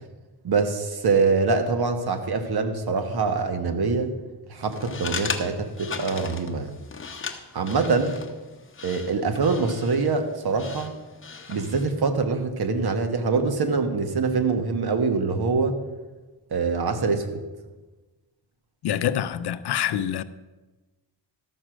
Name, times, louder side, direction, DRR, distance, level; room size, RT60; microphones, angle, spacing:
voice 1, 0.4-4.1 4.5-6.8 7.5-8.2 8.8-10.9 11.5-15.8 16.5-17.4, right 4 dB, 55° right, 1.3 m, -24 dB
sound 1, 4.6-12.0, left 5 dB, 30° left, 0.9 m, -37 dB
voice 2, 18.8-20.2, left 10 dB, 65° left, 0.6 m, -26 dB
13.5 x 6.2 x 6.2 m
wide cardioid pair, 115°, 44 cm